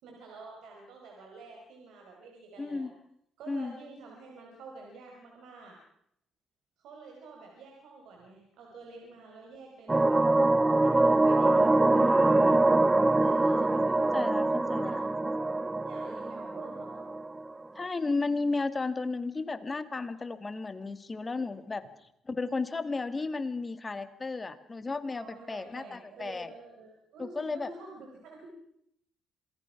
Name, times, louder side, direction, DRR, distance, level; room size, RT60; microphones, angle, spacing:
voice 1, 0.0-2.9 3.4-5.8 6.8-11.8 13.2-15.0 15.8-17.1 25.1-28.5, right 3 dB, 85° right, 0 dB, 5.2 m, -49 dB
voice 2, 2.6-2.9 3.5-3.8 11.4-12.6 14.1-15.0 17.8-21.8 22.3-26.5 27.2-27.7, left 3 dB, 25° left, 10 dB, 2.0 m, -34 dB
sound 1, 9.9-17.5, right 2 dB, 20° right, 0.8 m, -24 dB
27.0 x 19.0 x 5.9 m, 0.75 s
cardioid pair, 90°, 0 cm